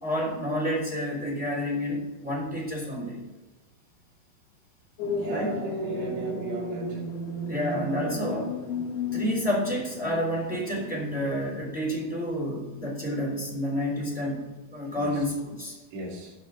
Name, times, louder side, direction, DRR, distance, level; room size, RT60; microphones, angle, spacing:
voice 1, 0.0-3.2 5.3-5.6 7.5-8.6 9.1-15.8, equal, ahead, -4 dB, 2.6 m, -29 dB
sound 1, 5.0-11.6, left 2 dB, 65° left, 3.5 m, -34 dB
voice 2, 5.1-7.0 14.9-15.2 15.9-16.3, right 2 dB, 75° right, -3 dB, 4.7 m, -37 dB
9.6 x 5.8 x 6.8 m, 1.1 s
omnidirectional pair, 4.9 m